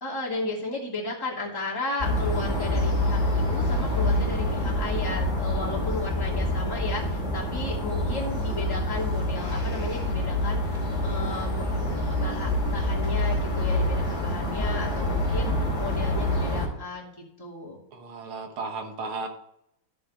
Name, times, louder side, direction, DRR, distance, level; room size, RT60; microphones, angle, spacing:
voice 1, 0.0-11.7 12.1-17.1 17.4-17.8, left 3 dB, 10° left, -5 dB, 2.3 m, -34 dB
sound 1, 2.0-16.7, left 1 dB, 25° left, 2.5 m, -26 dB
voice 2, 17.9-19.3, right 3 dB, 55° right, 4 dB, 1.8 m, -34 dB
12.0 x 6.9 x 4.3 m, 0.78 s
omnidirectional pair, 3.5 m